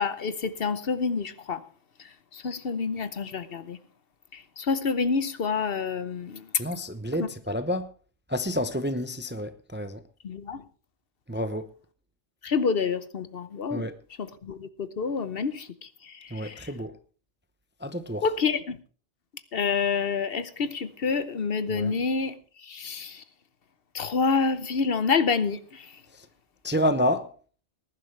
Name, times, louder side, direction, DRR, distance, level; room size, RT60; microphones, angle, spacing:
voice 1, 0.0-1.6 2.3-3.8 4.3-6.5 7.2-7.3 10.2-10.6 12.4-13.8 14.2-16.7 18.2-18.8 19.5-22.3 22.6-23.2 23.9-25.9, left 5 dB, 60° left, 1.0 m, -28 dB
voice 2, 6.6-7.9 8.3-10.0 11.3-11.7 13.7-13.9 16.3-16.9 17.8-18.2 21.7-21.9 26.6-27.3, equal, 10° right, 0.6 m, -29 dB
19.5 x 11.0 x 3.3 m
omnidirectional pair, 1.2 m